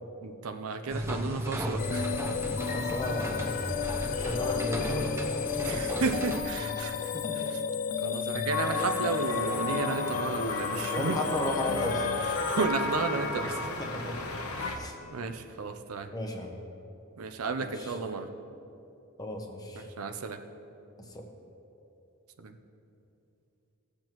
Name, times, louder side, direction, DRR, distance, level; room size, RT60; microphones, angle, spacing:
voice 1, 0.2-2.1 5.6-7.6 8.0-11.2 12.2-13.6 14.6-16.1 17.2-18.3 19.8-20.4 22.4-22.5, right 4 dB, 75° right, 7 dB, 0.6 m, -33 dB
sound 1, 0.9-6.4, equal, 10° right, 0.7 m, -35 dB
sound 2, 1.8-12.7, left 7 dB, 40° left, 0.4 m, -33 dB
voice 2, 2.7-3.5 4.2-5.2 5.6-5.9 7.1-7.5 10.9-12.1 13.8-14.2 14.8-14.9 16.1-16.5 17.6-18.0 19.2-19.9 21.1-21.3, left 1 dB, 20° left, 2 dB, 1.0 m, -34 dB
sound 3, 8.5-14.8, left 2 dB, 80° left, 1.0 m, -34 dB
16.5 x 7.5 x 3.0 m, 2.8 s
head